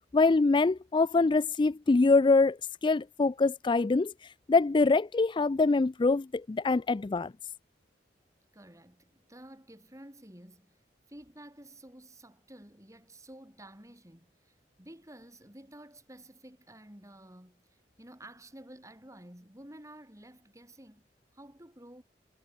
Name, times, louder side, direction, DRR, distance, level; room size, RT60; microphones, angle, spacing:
voice 1, 0.1-7.3, left 3 dB, 25° left, 0.4 m, -24 dB
voice 2, 8.5-10.8 11.1-21.1 21.3-22.0, right 1 dB, 20° right, 5.6 m, -51 dB
head